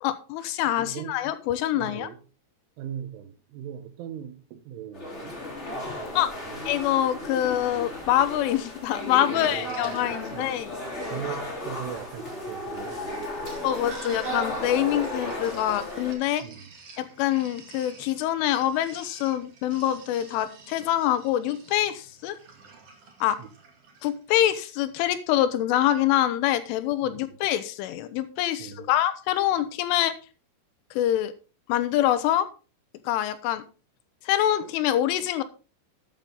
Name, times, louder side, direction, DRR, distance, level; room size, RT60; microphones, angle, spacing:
voice 1, 0.0-2.1 5.9-6.3 6.7-10.7 13.6-16.4 17.0-22.4 23.2-23.4 24.0-30.1 30.9-31.3 31.7-32.5 33.0-33.6 34.2-35.4, left 12 dB, 80° left, 3.2 m, -25 dB
voice 2, 0.6-1.2 1.7-2.2 2.8-5.4 5.9-6.8 9.3-10.6 11.1-13.5 16.4-16.7 23.4-23.5 27.1-27.2 28.6-29.0, right 9 dB, 75° right, 3.3 m, -40 dB
sound 1, 4.9-16.1, left 1 dB, 20° left, 2.4 m, -34 dB
Sink (filling or washing), 9.2-24.2, right 4 dB, 45° right, 2.1 m, -49 dB
13.0 x 8.8 x 3.7 m
omnidirectional pair, 5.9 m